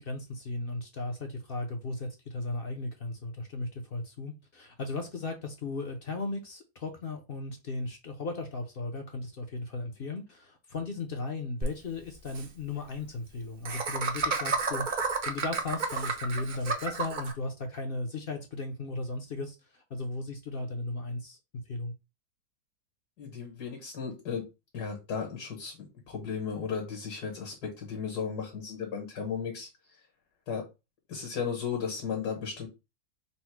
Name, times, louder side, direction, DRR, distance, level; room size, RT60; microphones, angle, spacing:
voice 1, 0.0-21.4 21.7-21.9, left 2 dB, 60° left, 0.6 m, -36 dB
Laughter, 11.6-11.7 12.0-12.1 12.3-12.5 13.7-17.3, right 4 dB, 60° right, 0.5 m, -31 dB
voice 2, 23.2-24.4 24.7-29.7 30.5-30.7 31.1-32.7, left 6 dB, 75° left, 1.7 m, -35 dB
4.1 x 2.0 x 4.4 m
omnidirectional pair, 1.7 m